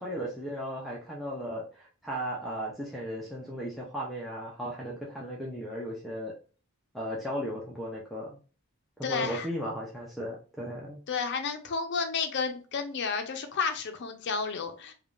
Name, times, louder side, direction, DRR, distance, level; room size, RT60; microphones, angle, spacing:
voice 1, 0.0-6.3 6.9-8.4 9.0-11.0, equal, ahead, -5 dB, 0.5 m, -36 dB
voice 2, 9.0-9.5 11.1-14.9, left 5 dB, 50° left, 6 dB, 0.5 m, -31 dB
3.4 x 2.3 x 2.4 m, 0.36 s
head